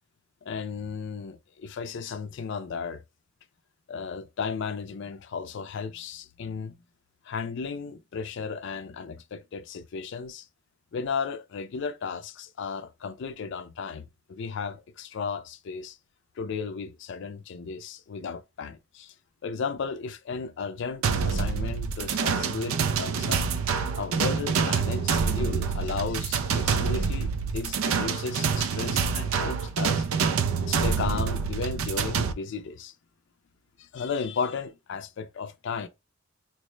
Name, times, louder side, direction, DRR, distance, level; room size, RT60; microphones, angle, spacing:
voice 1, 0.4-3.0 3.9-6.7 7.3-10.5 10.9-16.0 16.4-19.1 19.4-23.4 23.9-30.1 30.7-32.9 33.8-35.9, left 5 dB, 60° left, 0.4 m, -34 dB
sound 1, 21.0-32.3, right 6 dB, 85° right, 0.4 m, -26 dB
4.5 x 2.1 x 3.1 m
head